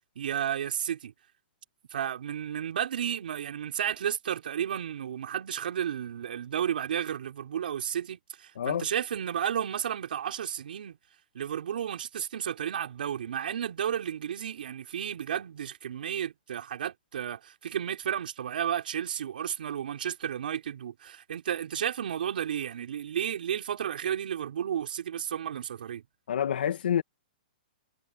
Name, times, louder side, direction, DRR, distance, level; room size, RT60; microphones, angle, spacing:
voice 1, 0.2-1.1 1.9-11.0 11.3-26.0, right 9 dB, 70° right, 5.2 m, -32 dB
voice 2, 26.3-27.0, left 9 dB, 80° left, 2.0 m, -27 dB
hypercardioid pair, 165°, 5 cm